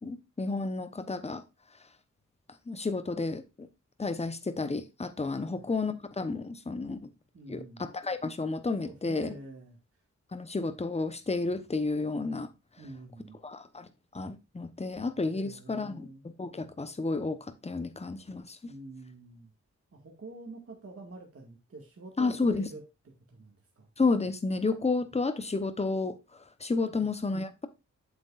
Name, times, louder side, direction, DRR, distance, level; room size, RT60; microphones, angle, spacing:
voice 1, 0.0-1.4 2.7-3.7 4.0-7.1 7.5-9.4 10.3-12.5 13.4-16.1 16.4-18.6 22.2-22.7 24.0-26.2 26.6-27.7, left 3 dB, 20° left, 1.0 m, -31 dB
voice 2, 7.3-7.8 8.8-9.8 12.8-13.4 15.3-16.3 18.7-19.5 19.9-23.9 26.9-27.1, right 2 dB, 50° right, 1.9 m, -47 dB
8.0 x 7.8 x 2.5 m
wide cardioid pair, 95°, 29 cm